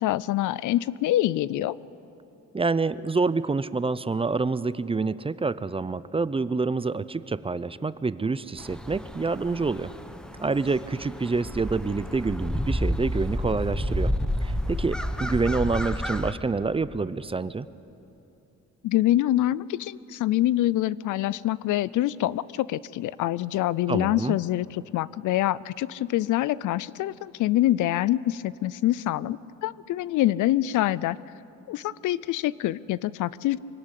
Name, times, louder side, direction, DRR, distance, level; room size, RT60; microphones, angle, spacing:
voice 1, 0.0-1.8 18.8-31.2 31.7-33.6, left 14 dB, 80° left, 20 dB, 0.6 m, -25 dB
voice 2, 2.5-9.9 10.4-14.1 14.4-17.7 23.9-24.4, right 4 dB, 20° right, 16 dB, 0.6 m, -27 dB
sound 1, 8.6-16.3, equal, 5° left, 1.2 m, -30 dB
24.5 x 17.5 x 10.0 m, 2.9 s
cardioid pair, 90°, 30 cm